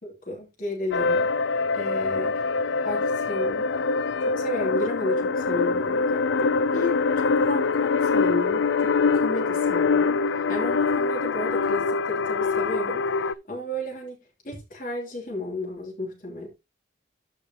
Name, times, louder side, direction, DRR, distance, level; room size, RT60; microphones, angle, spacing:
voice 1, 0.0-1.3 1.7-3.7 4.0-16.5, left 1 dB, 50° left, 3.1 m, -33 dB
sound 1, 0.9-13.3, left 4 dB, 80° left, 0.4 m, -24 dB
13.0 x 5.5 x 2.9 m
head